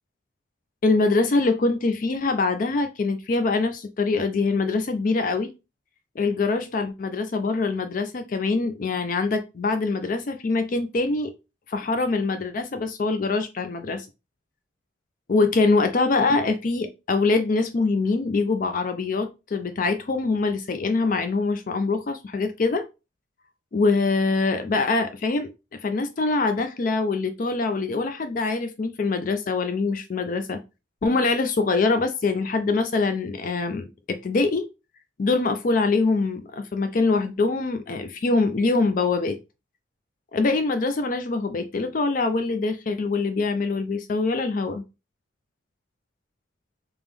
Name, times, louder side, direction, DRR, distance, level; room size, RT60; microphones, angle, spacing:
voice 1, 0.8-5.5 6.2-11.3 11.7-14.1 15.3-22.8 23.7-30.6 31.0-34.7 35.2-39.4 40.3-44.8, left 3 dB, 45° left, 0.4 m, -24 dB
3.3 x 3.0 x 3.5 m
head